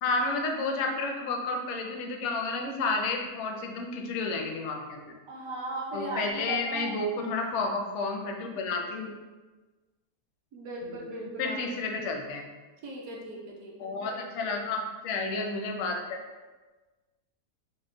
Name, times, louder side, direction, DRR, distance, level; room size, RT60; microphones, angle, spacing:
voice 1, 0.0-5.2 5.9-9.1 11.4-12.5 13.8-16.2, left 3 dB, 70° left, 2 dB, 0.7 m, -31 dB
voice 2, 5.3-7.0 10.5-11.6 12.8-14.2, right 1 dB, 70° right, -2 dB, 1.1 m, -37 dB
4.3 x 2.0 x 3.7 m, 1.3 s
omnidirectional pair, 1.7 m